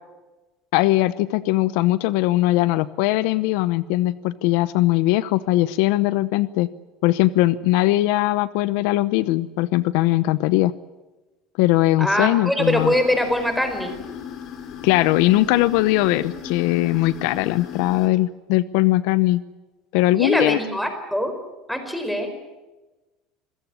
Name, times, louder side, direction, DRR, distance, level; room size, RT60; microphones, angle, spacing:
voice 1, 0.7-6.7 7.0-10.7 11.6-12.9 14.8-19.4 19.9-20.6, left 17 dB, 75° left, 16 dB, 0.8 m, -20 dB
voice 2, 12.0-13.9 20.1-21.3 21.7-22.3, equal, ahead, 7 dB, 4.5 m, -23 dB
sound 1, 12.6-18.1, left 8 dB, 50° left, 4.1 m, -36 dB
27.0 x 15.5 x 9.7 m, 1.1 s
cardioid pair, 135°, 0 cm